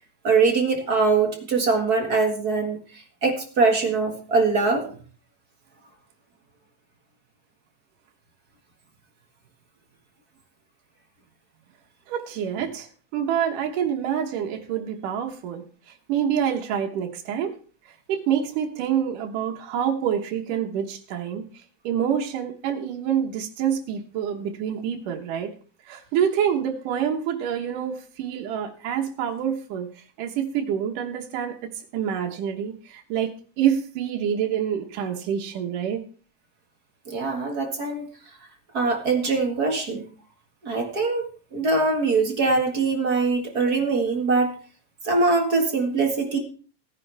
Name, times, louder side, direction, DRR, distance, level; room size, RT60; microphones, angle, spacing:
voice 1, 0.2-2.8 3.2-4.9 37.1-38.1 38.7-40.0 40.6-44.5 45.0-46.4, right 4 dB, 35° right, 2 dB, 1.9 m, -22 dB
voice 2, 12.1-17.6 18.1-21.5 21.8-25.5 25.9-31.6 31.9-36.0, right 9 dB, 80° right, 2 dB, 2.8 m, -27 dB
16.5 x 10.0 x 3.4 m, 0.39 s
omnidirectional pair, 3.7 m